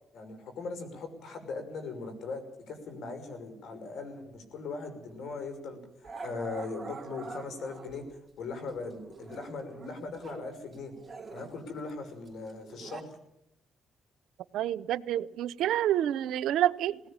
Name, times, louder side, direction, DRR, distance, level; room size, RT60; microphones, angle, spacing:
voice 1, 0.1-5.8 6.2-8.0 8.4-10.9 11.3-13.1, left 4 dB, 75° left, 7 dB, 6.2 m, -39 dB
Growling, 5.1-5.3 6.0-8.1 8.7-10.5 10.7-13.0, right 4 dB, 20° right, 3.2 m, -45 dB
voice 2, 14.5-17.0, right 12 dB, 85° right, 18 dB, 0.7 m, -28 dB
19.5 x 18.0 x 8.9 m, 0.83 s
cardioid pair, 90°, 0 cm